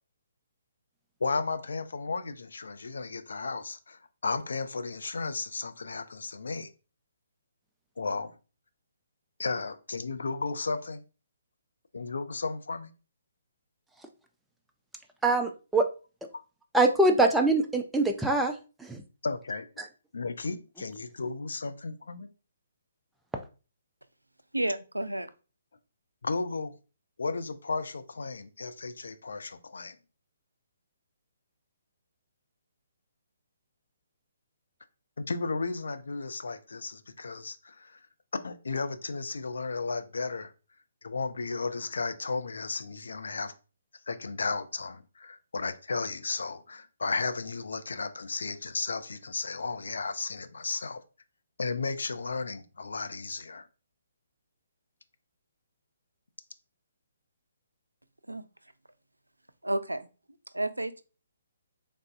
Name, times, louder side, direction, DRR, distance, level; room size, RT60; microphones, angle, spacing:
voice 1, 1.2-6.7 8.0-8.4 9.4-11.0 11.9-12.9 16.3-16.4 19.2-19.7 20.1-22.3 26.2-26.8 27.2-30.0 35.2-38.0 38.4-40.5 41.0-43.5 44.1-51.0 51.6-53.7, left 4 dB, 65° left, 10 dB, 0.4 m, -34 dB
voice 2, 15.2-15.8 16.7-18.5 18.8-19.0, right 2 dB, 5° right, 3 dB, 0.4 m, -23 dB
voice 3, 24.5-25.3 58.3-58.4 59.6-60.1 60.5-61.0, right 1 dB, 90° right, 12 dB, 0.3 m, -31 dB
3.3 x 2.5 x 2.5 m, 0.34 s
figure-of-eight pair, 135°, 0 cm